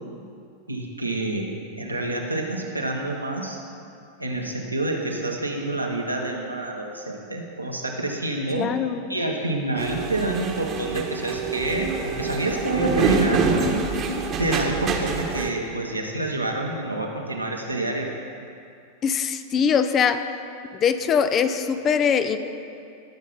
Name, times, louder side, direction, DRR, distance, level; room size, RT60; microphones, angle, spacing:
voice 1, 0.7-1.5 1.8-3.6 4.2-8.7 9.1-13.4 14.4-18.1, right 2 dB, 85° right, 0 dB, 1.4 m, -27 dB
voice 2, 8.5-9.0 19.0-20.2 20.7-22.4, left 7 dB, 30° left, 10 dB, 0.7 m, -22 dB
sound 1, 9.8-15.5, right 4 dB, 30° right, 1.3 m, -26 dB
18.5 x 7.2 x 4.2 m, 2.5 s
figure-of-eight pair, 90°, 0 cm